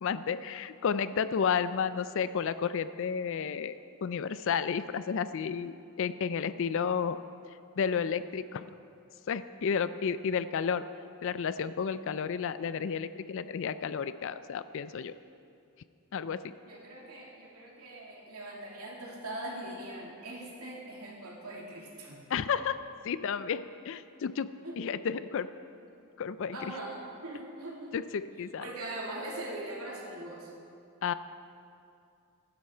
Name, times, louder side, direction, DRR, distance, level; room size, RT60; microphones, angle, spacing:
voice 1, 0.0-7.2 7.8-8.7 9.3-10.8 11.2-15.1 16.1-16.5 22.3-22.8 23.0-24.5 24.8-25.5 26.2-26.7 27.9-28.7 31.0-31.1, left 6 dB, 60° left, 13 dB, 0.4 m, -32 dB
voice 2, 16.7-22.2 24.6-25.0 26.5-27.9 28.6-30.5, right 1 dB, 90° right, -2 dB, 2.7 m, -41 dB
16.0 x 11.5 x 4.5 m, 2.5 s
head